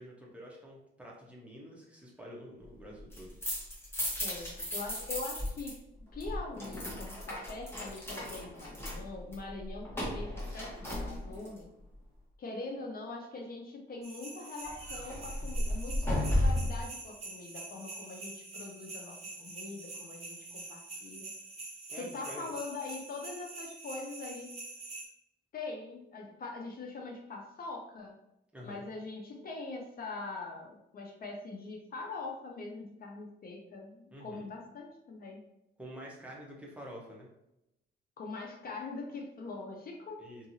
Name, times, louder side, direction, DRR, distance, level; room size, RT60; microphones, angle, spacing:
voice 1, 0.0-3.4 21.9-22.5 28.5-28.9 34.1-34.5 35.8-37.3 40.2-40.5, equal, 5° right, -4 dB, 0.9 m, -48 dB
sound 1, 3.0-5.7 6.0-11.6 14.6-16.9, left 1 dB, 10° left, 1.2 m, -34 dB
voice 2, 4.2-5.8 6.1-11.7 12.4-21.3 22.0-24.5 25.5-28.2 28.6-35.4 38.2-40.5, left 3 dB, 50° left, 1 dB, 0.6 m, -43 dB
sound 2, 14.0-25.1, right 3 dB, 30° right, 1.0 m, -45 dB
2.8 x 2.6 x 2.6 m, 0.86 s
cardioid pair, 90°, 20 cm